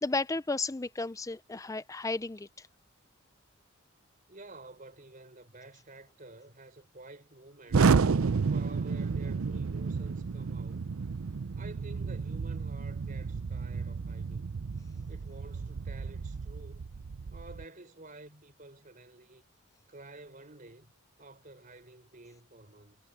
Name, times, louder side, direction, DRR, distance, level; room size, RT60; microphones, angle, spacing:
voice 1, 0.0-2.5, left 3 dB, 15° left, 0.5 m, -33 dB
voice 2, 4.3-8.0 8.5-10.9 11.5-14.6 15.1-16.9 17.3-19.4 19.9-20.9 21.2-23.0, right 2 dB, 40° right, 4.6 m, -51 dB
Explosion, 7.7-17.6, right 5 dB, 85° right, 0.6 m, -31 dB
head